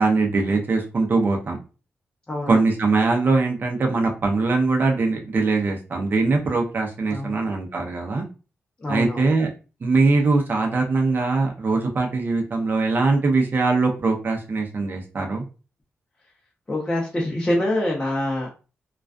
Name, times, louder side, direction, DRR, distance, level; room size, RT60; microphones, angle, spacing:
voice 1, 0.0-1.6 2.5-8.2 8.9-9.5 9.8-15.4, right 3 dB, 45° right, 2 dB, 0.6 m, -21 dB
voice 2, 2.3-2.6 7.1-7.4 8.8-9.3 16.7-18.5, left 1 dB, 20° left, -4 dB, 0.7 m, -25 dB
2.3 x 2.3 x 2.4 m, 0.33 s
wide cardioid pair, 110°, 5 cm